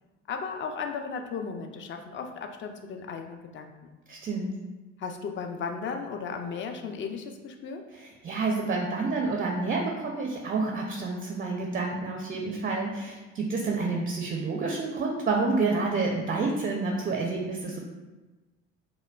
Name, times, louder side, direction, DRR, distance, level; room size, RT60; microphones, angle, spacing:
voice 1, 0.3-4.0 5.0-7.8, left 5 dB, 35° left, 5 dB, 0.4 m, -35 dB
voice 2, 4.1-4.5 7.9-17.8, right 3 dB, 25° right, 0 dB, 0.4 m, -29 dB
4.9 x 2.1 x 2.2 m, 1.2 s
hypercardioid pair, 60°, 36 cm